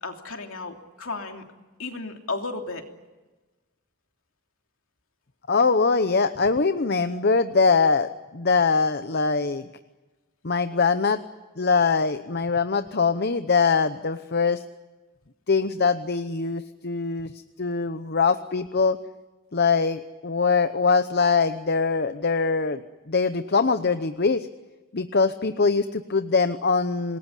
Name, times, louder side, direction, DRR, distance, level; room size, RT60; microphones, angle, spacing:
voice 1, 0.0-1.4 1.8-2.9, left 3 dB, 65° left, 3 dB, 3.1 m, -33 dB
voice 2, 5.5-9.7 10.4-11.2 11.6-14.6 15.5-17.3 17.6-19.0 19.5-22.8 23.1-24.5 24.9-27.2, left 4 dB, 45° left, 10 dB, 0.8 m, -22 dB
27.0 x 20.5 x 10.0 m, 1.2 s
head